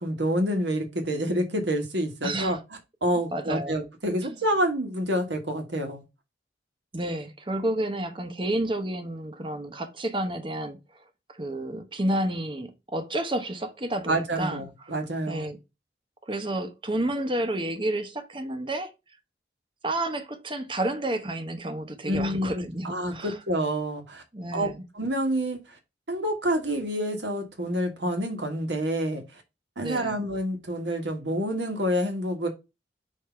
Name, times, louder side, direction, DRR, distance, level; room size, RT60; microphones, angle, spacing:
voice 1, 0.0-2.6 3.0-6.0 14.1-15.5 22.1-24.2 24.5-24.7 24.9-25.8 26.1-29.4 29.8-32.5, equal, 80° right, 1.5 m, -28 dB
voice 2, 2.2-2.6 3.3-3.8 4.2-4.4 6.9-10.8 11.3-14.9 15.3-15.6 16.3-18.9 19.8-23.4 24.3-24.8 29.8-30.2, right 1 dB, 25° right, 0.9 m, -30 dB
6.5 x 2.8 x 5.6 m
head